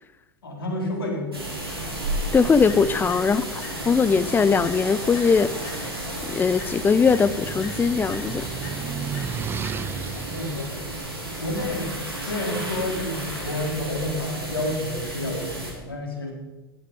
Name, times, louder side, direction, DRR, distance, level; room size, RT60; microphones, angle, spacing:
voice 1, 0.4-1.9 3.2-3.6 9.6-11.1 11.4-16.3, left 1 dB, 75° left, 0 dB, 4.1 m, -31 dB
sound 1, 1.3-15.7, right 1 dB, 85° right, 3.8 m, -33 dB
voice 2, 2.3-5.5 6.3-8.5, left 5 dB, 15° left, 17 dB, 0.7 m, -20 dB
sound 2, 2.7-4.1 4.6-6.2 6.6-10.2, left 6 dB, 60° left, 2.8 m, -46 dB
sound 3, 6.2-12.4, right 8 dB, 20° right, 0.3 m, -35 dB
16.0 x 11.5 x 4.9 m, 1.1 s
figure-of-eight pair, 85°, 12 cm